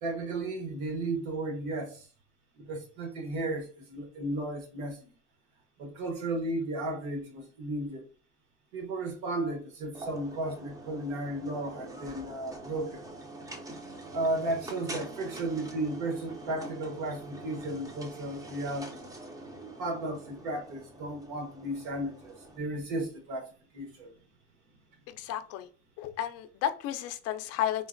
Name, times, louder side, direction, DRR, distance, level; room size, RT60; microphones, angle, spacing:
voice 1, 0.0-2.1 2.6-5.1 5.8-8.0 8.7-13.0 14.1-19.1 19.8-24.1, right 2 dB, 65° right, 1.2 m, -34 dB
sound 1, 10.0-22.6, right 2 dB, 10° right, 0.5 m, -45 dB
voice 2, 25.1-25.7 26.0-27.9, left 11 dB, 50° left, 0.4 m, -33 dB
3.8 x 2.1 x 2.5 m
supercardioid pair, 115°, 32 cm